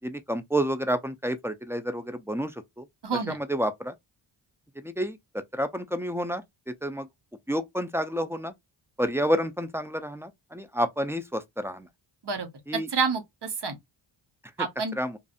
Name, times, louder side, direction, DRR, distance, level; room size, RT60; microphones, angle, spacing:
voice 1, 0.0-2.5 2.8-2.9 3.3-3.9 4.8-5.2 5.5-7.1 7.5-8.5 9.0-11.9 12.7-12.9 15.0-15.2, equal, 5° right, 0.5 m, -29 dB
voice 2, 3.0-3.4 12.2-13.8 14.6-14.9, right 5 dB, 55° right, 1.2 m, -29 dB
2.6 x 2.5 x 2.4 m
cardioid pair, 55°, 49 cm